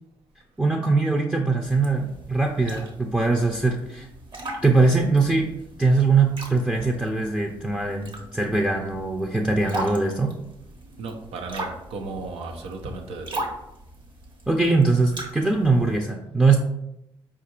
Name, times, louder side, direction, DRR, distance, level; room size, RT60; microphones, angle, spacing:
voice 1, 0.6-4.1 4.6-5.5 5.8-10.3 14.5-16.6, right 3 dB, 10° right, 1 dB, 0.5 m, -21 dB
sound 1, 1.6-16.0, right 1 dB, 55° right, 1.2 m, -39 dB
voice 2, 11.0-13.6, right 3 dB, 85° right, 3 dB, 0.7 m, -35 dB
4.6 x 2.5 x 4.3 m, 0.84 s
cardioid pair, 65°, 10 cm